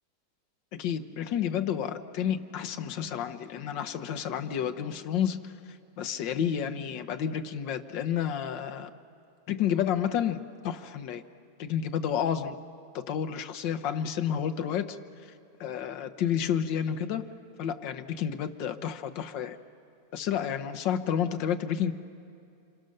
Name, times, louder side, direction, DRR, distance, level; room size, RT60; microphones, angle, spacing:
voice 1, 0.8-8.9 9.5-11.2 11.6-12.6 12.9-15.3 15.6-19.6 20.1-21.9, left 9 dB, 80° left, 8 dB, 1.6 m, -30 dB
29.0 x 28.0 x 6.6 m, 2.5 s
omnidirectional pair, 2.0 m